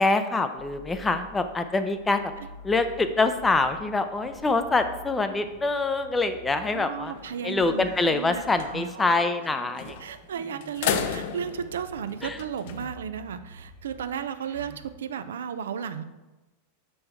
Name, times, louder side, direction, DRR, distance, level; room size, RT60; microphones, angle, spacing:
voice 1, 0.0-2.3 2.6-7.1 7.4-10.0 12.2-12.4, left 3 dB, 15° left, 9 dB, 0.5 m, -25 dB
sound 1, 0.6-14.9, right 2 dB, 70° right, 1.5 m, -48 dB
voice 2, 6.7-8.4 8.7-9.1 9.9-16.0, right 7 dB, 85° right, 11 dB, 0.4 m, -34 dB
sound 2, 7.1-7.7 8.0-8.1 8.4-8.7 9.8-10.2 10.6-12.8, left 8 dB, 65° left, 0.5 m, -32 dB
5.7 x 5.4 x 3.5 m, 1.1 s
hypercardioid pair, 120°, 0 cm